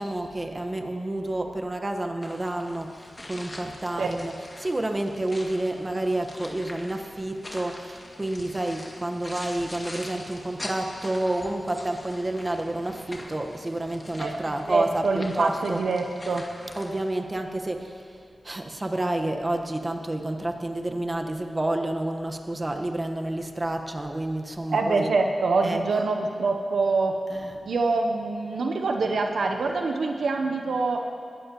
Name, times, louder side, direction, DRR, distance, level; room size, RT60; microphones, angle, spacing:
voice 1, 0.0-15.8 16.8-18.1 18.4-25.1 25.6-25.8 27.3-27.7, right 1 dB, 30° right, 4 dB, 1.3 m, -29 dB
sound 1, 2.2-17.0, left 1 dB, 35° left, 2.2 m, -43 dB
voice 2, 14.2-16.4 24.7-27.1 27.7-31.0, right 3 dB, 85° right, 3 dB, 0.8 m, -25 dB
20.0 x 14.0 x 3.0 m, 2.2 s
cardioid pair, 50°, 0 cm